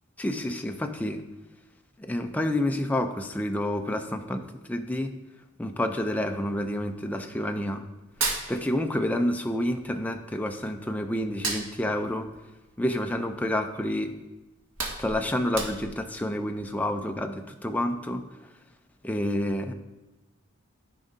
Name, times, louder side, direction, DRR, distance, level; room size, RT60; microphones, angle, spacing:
voice 1, 0.2-1.2 2.0-5.1 5.6-7.8 8.5-12.3 12.8-14.1 15.0-18.3 19.0-19.7, left 1 dB, 5° left, 5 dB, 0.4 m, -29 dB
Hands, 8.0-9.3 9.5-10.8 11.2-13.6 14.0-14.1 14.5-16.1, right 3 dB, 75° right, 1.4 m, -34 dB
13.0 x 5.0 x 2.6 m, 1.1 s
head